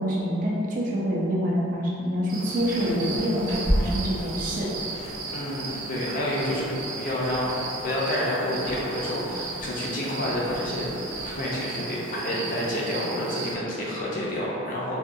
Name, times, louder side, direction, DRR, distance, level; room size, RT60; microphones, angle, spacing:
voice 1, 0.0-4.7, equal, 40° right, -4 dB, 0.4 m, -26 dB
sound 1, 2.3-13.5, right 3 dB, 80° right, 0.6 m, -35 dB
sound 2, 2.6-4.5 4.9-11.6, equal, 85° left, 1.2 m, -34 dB
voice 2, 5.3-15.0, left 1 dB, 40° left, -5 dB, 0.5 m, -29 dB
3.5 x 2.3 x 2.6 m, 2.6 s
head